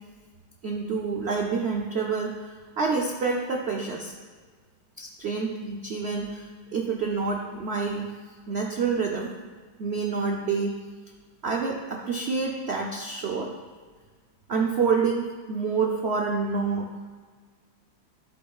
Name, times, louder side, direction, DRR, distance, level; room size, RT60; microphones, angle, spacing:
voice 1, 0.6-4.2 5.0-8.1 8.5-9.3 9.8-10.7 11.4-13.5 14.5-16.9, right 4 dB, 75° right, 0 dB, 0.5 m, -28 dB
11.5 x 7.6 x 2.4 m, 1.5 s
omnidirectional pair, 2.0 m